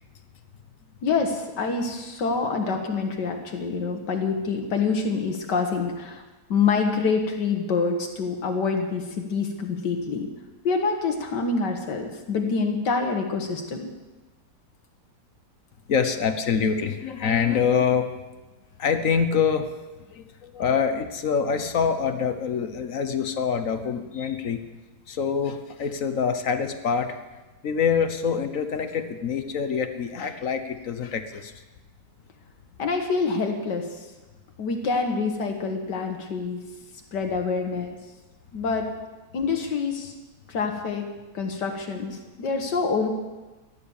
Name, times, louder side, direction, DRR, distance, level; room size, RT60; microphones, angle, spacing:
voice 1, 1.0-6.2 6.5-10.3 10.6-13.8 32.8-33.8 34.6-36.6 37.1-37.9 38.5-38.9 39.3-40.1 40.5-41.1 41.3-43.1, left 4 dB, 75° left, 3 dB, 1.9 m, -26 dB
voice 2, 15.9-18.1 18.8-19.7 20.1-24.6 25.1-27.2 27.6-31.5, left 6 dB, 55° left, 8 dB, 1.3 m, -25 dB
15.0 x 10.5 x 7.1 m, 1.2 s
omnidirectional pair, 1.9 m